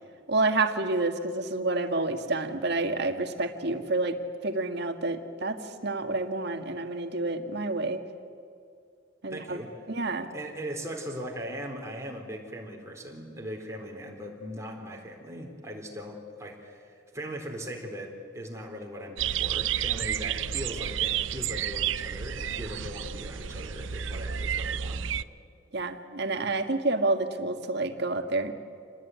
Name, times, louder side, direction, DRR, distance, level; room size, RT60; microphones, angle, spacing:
voice 1, 0.3-4.2 4.4-8.0 9.2-9.6 9.9-10.3 25.7-28.5, right 2 dB, 60° right, 6 dB, 1.9 m, -29 dB
voice 2, 9.3-9.7 10.3-25.1, equal, 15° right, 0 dB, 4.1 m, -39 dB
sound 1, 19.2-25.2, right 9 dB, 75° right, 0.6 m, -31 dB
27.5 x 19.5 x 9.6 m, 2.3 s
head